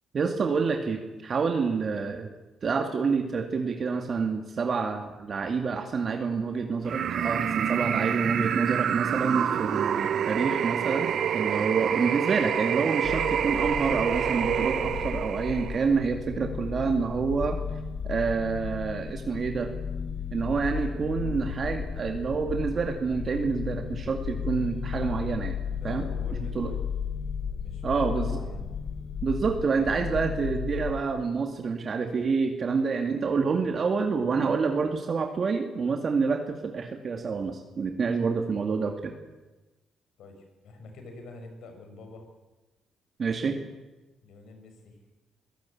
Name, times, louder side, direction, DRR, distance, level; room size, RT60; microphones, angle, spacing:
voice 1, 0.1-2.3 2.6-17.6 18.0-19.7 20.3-26.1 26.5-26.7 27.8-28.4 29.2-39.1 43.2-43.6, right 5 dB, 45° right, 4 dB, 2.1 m, -28 dB
sound 1, 6.9-15.9, right 9 dB, 65° right, 0.9 m, -27 dB
sound 2, 13.0-31.0, left 7 dB, 45° left, 1.4 m, -34 dB
voice 2, 25.7-26.8 27.6-28.6 40.2-42.3 44.2-45.0, left 3 dB, 75° left, 5 dB, 5.9 m, -46 dB
23.5 x 16.5 x 8.6 m, 1.1 s
cardioid pair, 90°, 0 cm